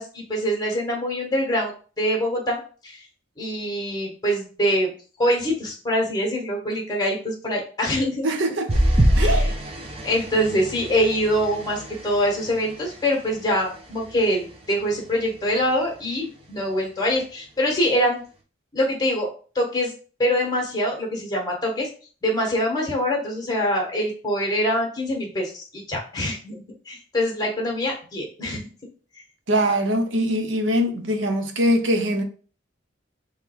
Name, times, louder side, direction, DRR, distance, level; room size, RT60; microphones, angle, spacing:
voice 1, 0.0-3.0 3.4-4.9 5.2-8.3 9.2-9.5 10.0-18.2 18.7-19.3 19.5-19.9 20.2-21.9 22.2-28.7, equal, 20° left, 1.5 m, -24 dB
voice 2, 8.2-8.8 9.1-9.6 29.5-32.2, equal, 80° right, 0.8 m, -22 dB
sound 1, 8.7-13.4 13.9-14.2 14.6-14.7, right 1 dB, 30° right, 0.9 m, -24 dB
3.6 x 3.2 x 4.5 m
head